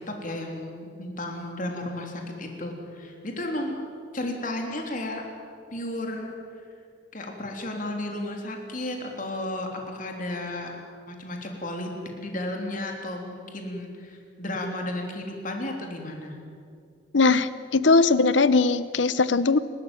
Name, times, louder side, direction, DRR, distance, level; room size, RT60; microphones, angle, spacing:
voice 1, 0.0-3.8 4.1-5.2 5.7-6.7 7.1-10.8 11.1-11.9 12.2-16.4, left 1 dB, 45° left, 2 dB, 3.5 m, -33 dB
voice 2, 17.1-19.6, left 3 dB, 85° left, 16 dB, 0.9 m, -20 dB
29.5 x 13.5 x 9.1 m, 2.3 s
head